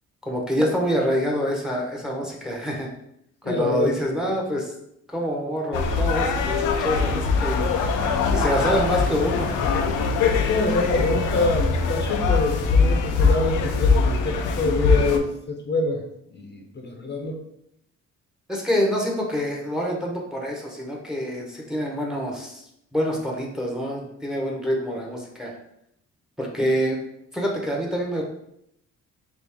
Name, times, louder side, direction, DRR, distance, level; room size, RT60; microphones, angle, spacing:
voice 1, 0.2-2.9 3.4-4.7 5.1-7.6 8.3-9.8 18.5-22.6 22.9-25.5 26.4-27.0 27.3-28.2, equal, ahead, -1 dB, 0.9 m, -26 dB
voice 2, 3.4-4.3 10.4-16.0 16.3-17.4, left 2 dB, 35° left, 2 dB, 0.8 m, -26 dB
sound 1, 5.7-15.2, left 4 dB, 85° left, 0.6 m, -22 dB
4.1 x 2.7 x 3.5 m, 0.76 s
cardioid pair, 90°, 30 cm